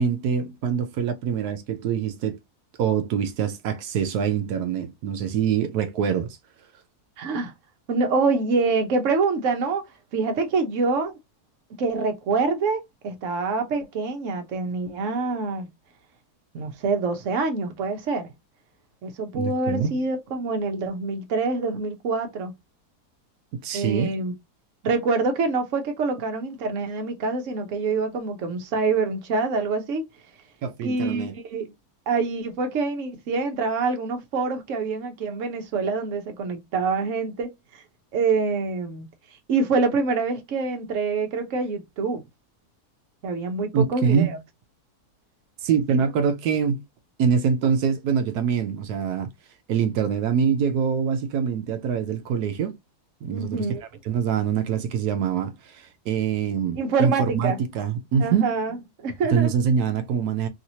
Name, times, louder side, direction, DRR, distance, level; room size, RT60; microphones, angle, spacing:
voice 1, 0.0-2.4 2.8-6.4 19.3-20.0 23.5-24.1 30.6-31.3 43.7-44.4 45.6-46.8 47.2-49.3 49.7-52.7 53.2-53.7 54.1-58.5 59.3-60.5, right 7 dB, 85° right, 1.1 m, -24 dB
voice 2, 7.2-7.5 7.9-9.8 10.1-11.1 11.8-15.7 16.5-18.3 19.0-22.5 23.7-24.3 24.8-30.0 30.8-31.7 32.1-37.8 38.1-39.1 39.5-42.2 43.2-44.4 45.9-46.0 53.3-53.8 56.8-57.6 58.2-59.5, right 4 dB, 60° right, 1.1 m, -26 dB
3.2 x 2.9 x 2.6 m
omnidirectional pair, 1.6 m